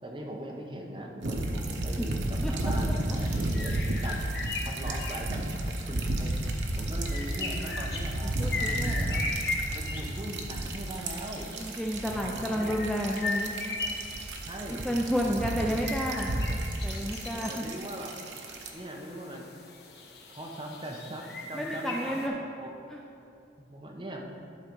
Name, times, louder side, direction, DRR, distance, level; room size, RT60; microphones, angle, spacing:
voice 1, 0.0-4.2 4.6-9.2 9.7-11.5 12.1-12.8 14.4-14.9 15.2-15.8 17.2-18.2 18.7-19.5 20.3-22.7 23.6-24.3, right 1 dB, 25° right, 0 dB, 0.8 m, -40 dB
sound 1, 1.2-18.7, right 1 dB, 85° right, 0.8 m, -33 dB
sound 2, 3.1-22.3, left 3 dB, 65° left, 1.0 m, -39 dB
voice 2, 8.2-9.0 11.6-13.6 14.8-16.3 16.8-17.6 21.5-22.3 22.9-23.0, equal, 5° left, -1 dB, 0.3 m, -31 dB
11.5 x 3.9 x 5.2 m, 2.6 s
head